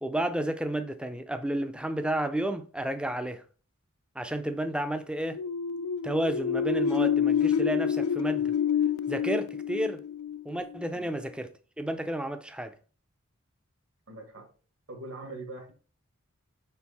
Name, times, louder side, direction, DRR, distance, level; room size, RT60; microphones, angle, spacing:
voice 1, 0.0-3.4 4.2-5.4 6.0-8.5 9.1-10.0 10.4-12.8, right 1 dB, 5° right, 0.4 m, -31 dB
sound 1, 5.2-10.9, left 8 dB, 80° left, 0.3 m, -28 dB
voice 2, 14.1-14.5 14.9-15.7, right 2 dB, 70° right, 1.4 m, -42 dB
5.6 x 4.5 x 4.1 m
head